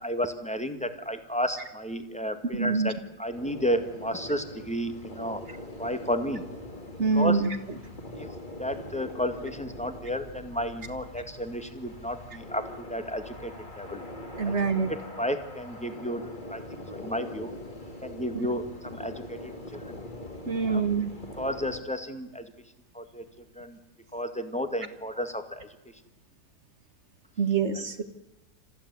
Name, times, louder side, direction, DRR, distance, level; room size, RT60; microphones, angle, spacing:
voice 1, 0.0-5.4 5.8-6.4 7.1-7.4 8.1-8.3 8.6-14.0 14.5-14.6 14.9-16.2 16.5-17.5 18.0-20.0 20.6-20.9 21.4-22.5 22.9-23.3 23.6-23.8 24.1-25.7 27.8-27.9, equal, 5° left, 7 dB, 1.8 m, -32 dB
voice 2, 2.5-2.9 7.0-7.5 14.4-14.9 20.5-21.1 27.4-28.0, right 5 dB, 45° right, 10 dB, 1.8 m, -25 dB
sound 1, 3.3-21.8, left 1 dB, 30° left, 2.8 m, -42 dB
27.0 x 15.0 x 9.7 m, 1.1 s
omnidirectional pair, 1.7 m